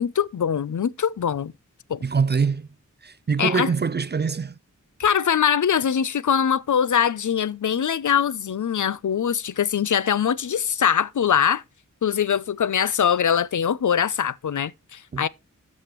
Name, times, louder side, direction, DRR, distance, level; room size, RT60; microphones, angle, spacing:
voice 1, 0.0-1.5 1.9-2.0 3.4-3.7 5.0-11.6 12.0-15.3, left 8 dB, 65° left, 0.6 m, -22 dB
voice 2, 2.0-2.7 3.0-4.5 15.1-15.2, right 5 dB, 35° right, 0.4 m, -24 dB
12.5 x 6.3 x 3.0 m
wide cardioid pair, 60°, 32 cm